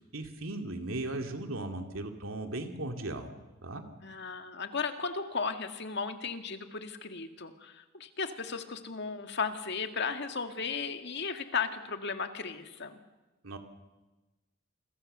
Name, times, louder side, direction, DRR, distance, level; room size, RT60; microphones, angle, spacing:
voice 1, 0.1-3.3 3.6-3.8 13.4-13.6, right 2 dB, 90° right, 5 dB, 2.6 m, -37 dB
voice 2, 4.0-13.0, left 5 dB, 60° left, 7 dB, 1.9 m, -35 dB
28.5 x 22.5 x 6.8 m, 1.1 s
head